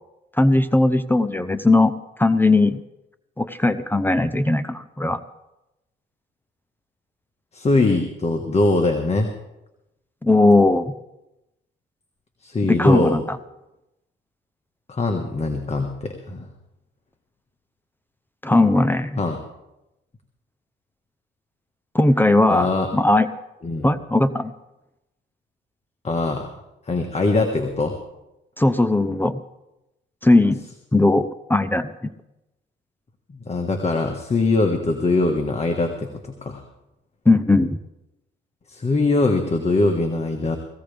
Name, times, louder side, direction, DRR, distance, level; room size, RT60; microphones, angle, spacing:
voice 1, 0.4-1.9 2.2-2.8 3.4-5.2 10.2-11.0 12.7-13.4 18.4-19.2 21.9-23.3 23.8-24.5 28.6-29.4 30.2-30.6 30.9-32.1 37.3-37.8, left 2 dB, 10° left, 12 dB, 0.7 m, -18 dB
voice 2, 7.5-9.3 12.4-13.2 14.9-16.5 19.2-19.4 22.5-22.9 23.6-23.9 26.0-26.5 26.9-28.0 33.4-36.6 38.7-40.6, left 2 dB, 35° left, 4 dB, 1.5 m, -22 dB
18.5 x 15.5 x 3.5 m, 0.93 s
cardioid pair, 90°, 20 cm